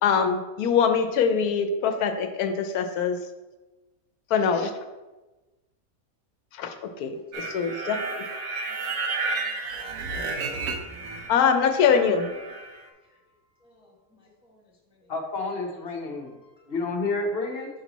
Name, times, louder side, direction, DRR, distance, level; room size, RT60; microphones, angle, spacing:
voice 1, 0.0-3.2 4.3-4.7 6.6-6.7 7.0-8.0 11.3-12.3, left 6 dB, 90° left, 7 dB, 1.1 m, -23 dB
sound 1, 7.3-11.4 11.7-12.8, right 3 dB, 75° right, 1.2 m, -32 dB
voice 2, 8.4-8.9 9.3-9.4 11.2-11.3 12.7-12.9 13.6-14.6 16.4-16.7, left 2 dB, 5° right, -3 dB, 0.5 m, -60 dB
voice 3, 15.1-16.3 16.7-17.7, left 3 dB, 45° left, 2 dB, 1.0 m, -29 dB
5.5 x 4.5 x 4.0 m, 1.1 s
omnidirectional pair, 1.6 m